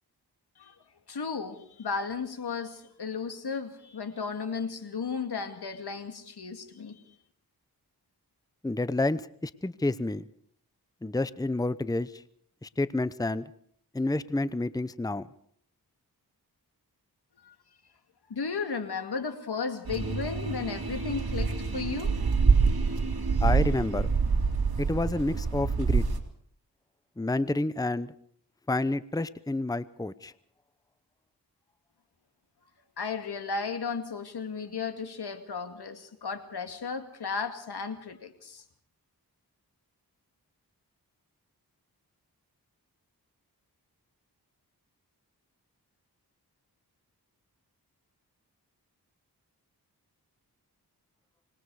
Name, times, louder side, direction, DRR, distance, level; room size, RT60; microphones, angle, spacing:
voice 1, 1.1-7.0 17.4-17.6 18.3-22.4 33.0-38.6, left 5 dB, 80° left, 7 dB, 2.4 m, -35 dB
voice 2, 8.6-10.3 11.0-12.1 12.6-13.4 13.9-15.2 23.4-24.1 24.8-26.0 27.2-28.1 28.7-30.3, left 2 dB, 10° left, 16 dB, 0.8 m, -29 dB
sound 1, 19.8-26.2, right 5 dB, 65° right, 2.9 m, -26 dB
25.5 x 20.5 x 4.9 m, 0.64 s
cardioid pair, 45°, 39 cm